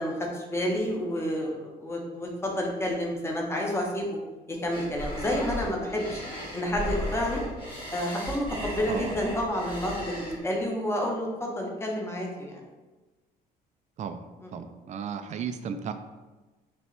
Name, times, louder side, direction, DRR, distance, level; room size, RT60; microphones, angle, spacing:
voice 1, 0.0-4.1 4.5-6.2 6.5-7.4 7.9-12.6 14.4-14.5, left 1 dB, 15° left, 0 dB, 0.9 m, -30 dB
sound 1, 4.7-10.4, equal, 30° left, 1.4 m, -36 dB
voice 2, 14.5-15.9, right 7 dB, 45° right, 9 dB, 0.4 m, -34 dB
4.3 x 3.0 x 3.1 m, 1.2 s
cardioid pair, 110°, 17 cm